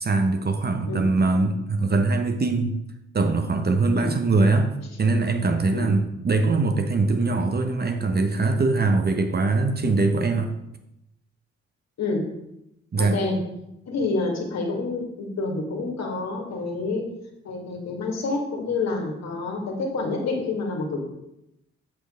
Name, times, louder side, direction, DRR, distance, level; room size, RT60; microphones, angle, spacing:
voice 1, 0.0-2.7 3.1-4.7 5.0-10.5 12.9-13.2, right 3 dB, 30° right, 6 dB, 0.9 m, -22 dB
voice 2, 13.0-13.4 13.9-17.0 17.4-21.0, left 3 dB, 50° left, 1 dB, 2.1 m, -28 dB
8.0 x 5.9 x 3.8 m, 0.84 s
figure-of-eight pair, 40°, 34 cm